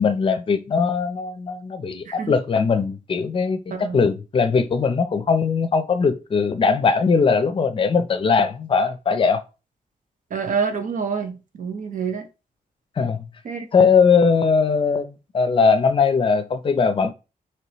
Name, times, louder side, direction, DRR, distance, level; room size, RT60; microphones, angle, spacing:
voice 1, 0.0-9.4 13.0-13.2 13.7-17.1, left 5 dB, 35° left, 0.5 m, -20 dB
voice 2, 10.3-12.3 13.4-13.6, right 6 dB, 65° right, 0.8 m, -27 dB
4.7 x 3.0 x 3.0 m
wide cardioid pair, 155°, 15 cm